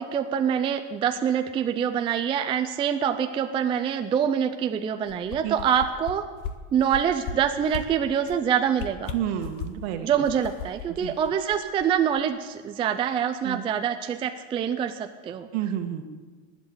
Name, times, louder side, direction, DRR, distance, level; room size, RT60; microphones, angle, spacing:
voice 1, 0.0-6.3 6.7-9.1 10.0-15.5, right 8 dB, 15° right, 7 dB, 0.4 m, -25 dB
sound 1, 5.1-6.1 6.4-6.5 6.9-7.3 7.7-7.8 8.2-8.4 8.7-9.9 10.2-11.8 12.2-12.3, left 8 dB, 45° left, 1.4 m, -35 dB
voice 2, 9.1-10.2 11.0-11.1 13.4-13.6 15.5-16.0, right 10 dB, 55° right, 7 dB, 1.7 m, -30 dB
20.0 x 8.2 x 8.4 m, 1.4 s
supercardioid pair, 145°, 39 cm